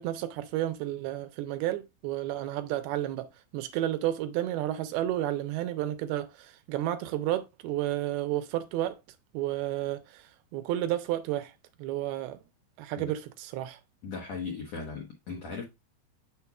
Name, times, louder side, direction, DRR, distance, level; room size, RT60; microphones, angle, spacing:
voice 1, 0.0-3.3 3.5-9.0 9.3-11.5 11.8-12.4 12.8-13.8, right 13 dB, 80° right, 2.4 m, -31 dB
voice 2, 14.0-15.6, left 4 dB, 75° left, 1.5 m, -37 dB
6.9 x 6.5 x 2.3 m
omnidirectional pair, 4.6 m